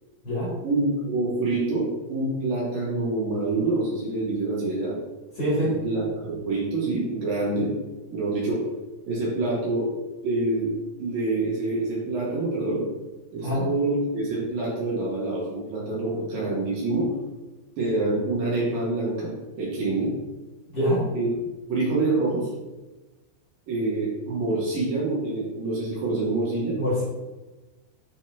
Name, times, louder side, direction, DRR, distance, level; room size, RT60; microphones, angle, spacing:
voice 1, 0.6-4.9 5.6-7.7 8.1-8.7 9.1-9.9 10.2-10.7 11.0-12.8 13.3-17.1 17.8-19.3 19.6-20.1 21.1-21.3 21.7-22.5 23.7-26.8, right 2 dB, 65° right, -6 dB, 3.5 m, -26 dB
voice 2, 5.4-5.8 13.4-13.6 20.7-21.1 26.8-27.0, equal, 40° left, -8 dB, 3.0 m, -24 dB
11.5 x 4.4 x 2.9 m, 1.2 s
omnidirectional pair, 4.7 m